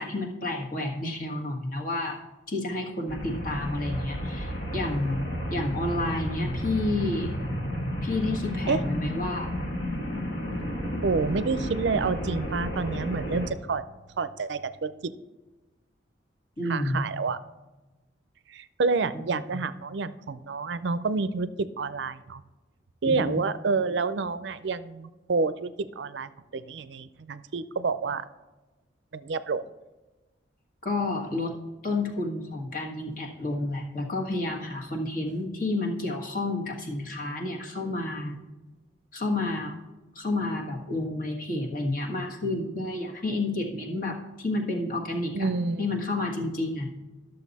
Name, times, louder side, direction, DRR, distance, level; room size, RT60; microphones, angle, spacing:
voice 1, 0.0-2.2 2.5-5.2 5.5-7.3 8.0-9.5 16.6-17.0 19.1-19.3 19.5-19.7 23.0-23.4 30.8-31.5 31.8-38.4 39.1-39.7 40.1-45.5 45.8-46.9, left 2 dB, 45° left, 0 dB, 1.6 m, -30 dB
sound 1, 3.1-13.5, equal, 65° left, 1.4 m, -32 dB
voice 2, 11.0-13.8 14.2-15.1 16.7-17.4 18.5-22.4 23.0-28.2 29.1-29.7 45.3-45.9, right 4 dB, 70° right, 14 dB, 0.5 m, -28 dB
12.0 x 6.7 x 4.1 m, 1.1 s
head